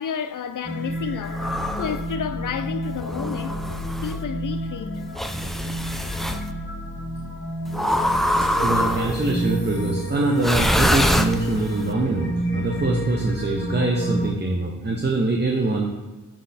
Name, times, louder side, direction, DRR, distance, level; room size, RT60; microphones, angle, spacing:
voice 1, 0.0-1.5 1.8-3.6 4.0-5.0, left 7 dB, 60° left, 0.5 m, -31 dB
sound 1, 0.6-14.3, right 1 dB, 35° left, 1.1 m, -29 dB
sound 2, 1.3-2.0 3.0-4.2 5.1-6.4 7.7-9.3 10.4-11.8, equal, ahead, 0.3 m, -24 dB
voice 2, 8.6-15.9, right 2 dB, 30° right, 0.7 m, -24 dB
6.2 x 4.0 x 4.1 m
wide cardioid pair, 60°, 35 cm